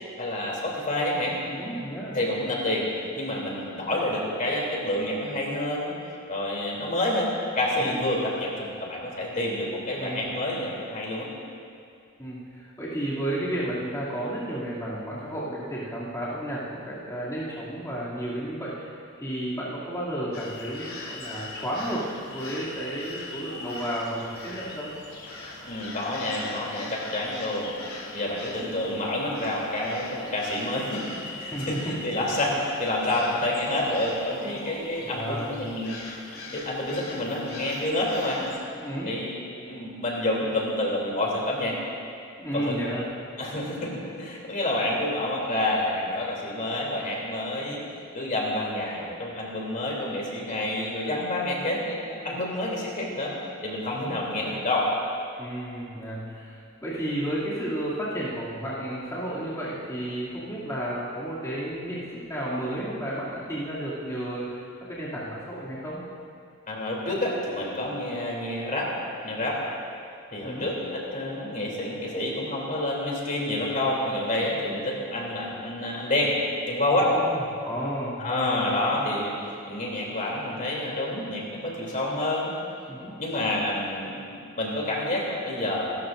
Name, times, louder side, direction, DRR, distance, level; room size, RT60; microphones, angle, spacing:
voice 1, 0.2-1.3 2.1-2.9 3.1-5.9 6.3-11.3 25.6-27.7 28.1-31.0 31.4-36.0 36.5-38.4 39.0-39.4 39.6-41.8 42.5-42.7 43.4-47.8 48.1-53.3 53.6-54.9 66.7-68.9 69.2-69.6 70.3-76.3 76.7-77.1 78.2-79.3 79.7-82.5 83.2-85.8, left 1 dB, 40° left, -3 dB, 3.2 m, -28 dB
voice 2, 1.5-2.2 7.8-8.1 9.9-10.4 12.2-24.9 31.4-32.0 35.0-35.6 38.7-39.1 42.4-43.0 52.2-52.3 53.9-54.2 55.4-66.0 70.4-70.7 77.0-78.3 82.9-83.2, right 1 dB, 15° left, -10 dB, 2.8 m, -32 dB
sound 1, 20.3-38.6, left 2 dB, 70° left, 3.4 m, -41 dB
29.0 x 13.5 x 2.6 m, 2.4 s
head